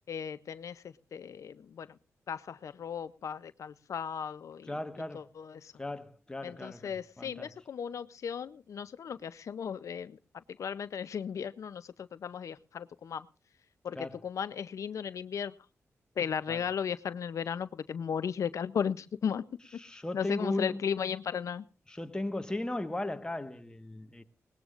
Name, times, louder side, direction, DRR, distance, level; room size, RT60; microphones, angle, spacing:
voice 1, 0.1-1.9 2.3-4.7 5.1-5.7 6.4-13.3 13.8-15.5 16.2-19.4 20.1-21.6, left 7 dB, 75° left, 0.6 m, -36 dB
voice 2, 4.7-5.3 5.8-7.5 13.9-14.2 16.5-16.6 19.8-20.8 21.9-24.2, left 1 dB, 15° left, 1.3 m, -37 dB
19.5 x 19.5 x 2.5 m
cardioid pair, 75°, 5 cm